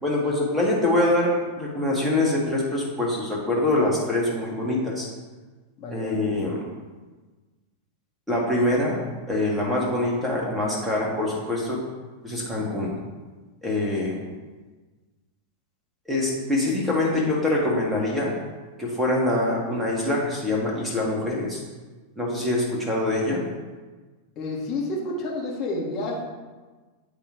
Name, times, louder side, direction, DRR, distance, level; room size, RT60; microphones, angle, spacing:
voice 1, 0.0-5.1 5.9-6.6 8.3-9.0 9.3-11.8 12.2-13.0 13.6-14.2 16.1-18.3 18.8-21.6 22.2-23.4, left 1 dB, 5° right, -4 dB, 1.9 m, -24 dB
voice 2, 5.8-6.2 24.4-26.2, left 2 dB, 35° left, -3 dB, 1.9 m, -30 dB
10.5 x 3.5 x 3.1 m, 1.3 s
figure-of-eight pair, 90°, 0 cm